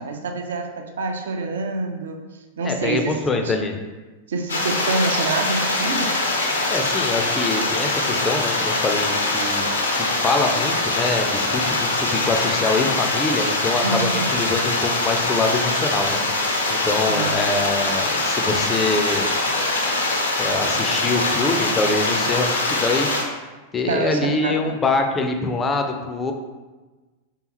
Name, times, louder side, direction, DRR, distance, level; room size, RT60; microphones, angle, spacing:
voice 1, 0.0-2.2 2.6-3.5 4.3-6.2 13.8-14.3 17.1-17.5 23.9-24.8, right 3 dB, 65° right, 4 dB, 0.4 m, -26 dB
voice 2, 2.6-3.7 6.7-9.7 10.0-19.4 20.4-23.1 23.7-26.3, left 3 dB, 20° left, 4 dB, 0.4 m, -24 dB
sound 1, 4.5-23.2, left 2 dB, 70° left, 0.5 m, -23 dB
3.4 x 2.8 x 2.9 m, 1.2 s
figure-of-eight pair, 90°, 0 cm